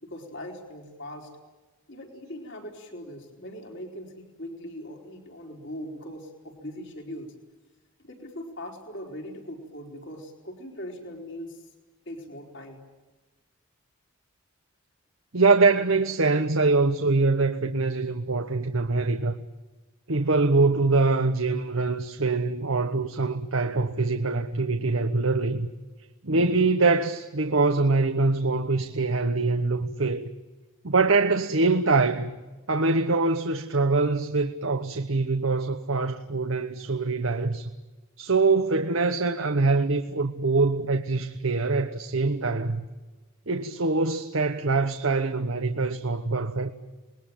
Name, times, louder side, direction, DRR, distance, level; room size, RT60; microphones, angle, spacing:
voice 1, 0.0-1.3 1.9-7.3 8.0-11.7 12.1-12.8, equal, 55° left, 4.4 m, -40 dB
voice 2, 15.3-19.4 20.1-25.7 26.2-30.2 30.8-32.4 32.7-37.7 38.2-42.8 43.5-46.7, right 3 dB, 65° right, 1.1 m, -24 dB
28.0 x 21.0 x 9.0 m
head